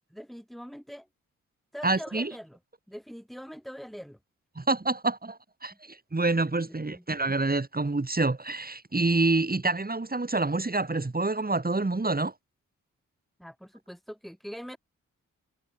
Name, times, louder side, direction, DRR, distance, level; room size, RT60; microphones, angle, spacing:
voice 1, 0.1-1.1 1.7-2.6 2.9-4.2 4.6-4.7 6.7-7.0 13.4-14.8, equal, ahead, 6.1 m, -43 dB
voice 2, 1.8-2.3 4.6-12.3, right 3 dB, 25° right, 4.6 m, -27 dB
supercardioid pair, 45°, 33 cm